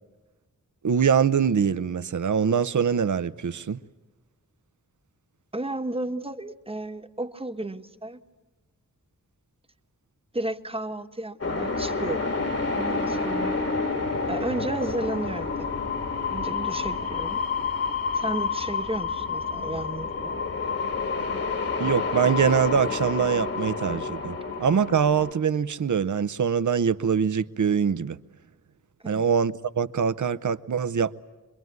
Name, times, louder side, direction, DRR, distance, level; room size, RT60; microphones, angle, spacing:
voice 1, 0.8-3.8 21.8-28.2 29.0-31.1, right 7 dB, 65° right, 0.8 m, -23 dB
voice 2, 5.5-8.2 10.3-12.3 12.7-13.6 14.3-15.7 16.3-17.4 18.1-20.3 29.0-29.2, right 2 dB, 15° right, 1.2 m, -33 dB
sound 1, 11.4-25.3, left 4 dB, 45° left, 2.1 m, -29 dB
25.5 x 22.5 x 9.4 m
wide cardioid pair, 75°, 33 cm